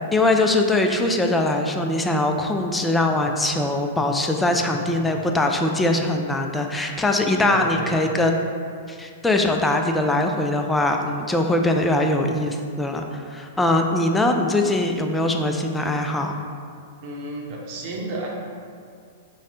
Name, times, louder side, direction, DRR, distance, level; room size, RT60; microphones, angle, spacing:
voice 1, 0.1-8.4 8.9-16.4, left 2 dB, 10° left, 3 dB, 0.3 m, -22 dB
voice 2, 4.4-4.8 7.4-8.0 17.0-18.3, right 2 dB, 45° right, -2 dB, 0.8 m, -33 dB
4.0 x 2.1 x 3.7 m, 2.3 s
hypercardioid pair, 110°, 0 cm